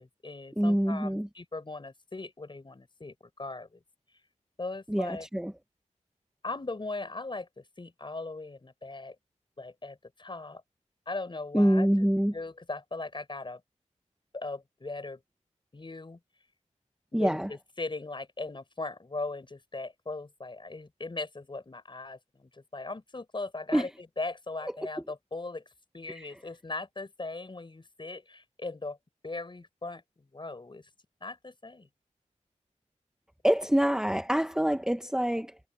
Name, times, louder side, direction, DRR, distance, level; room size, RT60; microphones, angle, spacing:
voice 1, 0.0-3.8 4.6-5.3 6.4-9.2 9.6-10.6 11.1-11.9 12.3-13.6 14.3-15.2 15.7-16.2 17.1-23.9 24.2-25.6 25.9-29.0 29.2-30.8 31.2-31.9, left 3 dB, 40° left, 5.2 m, -39 dB
voice 2, 0.6-1.3 4.9-5.5 11.5-12.3 17.1-17.5 23.7-23.9 26.1-26.3 33.4-35.6, equal, 5° right, 1.1 m, -26 dB
wide cardioid pair, 80°, 13 cm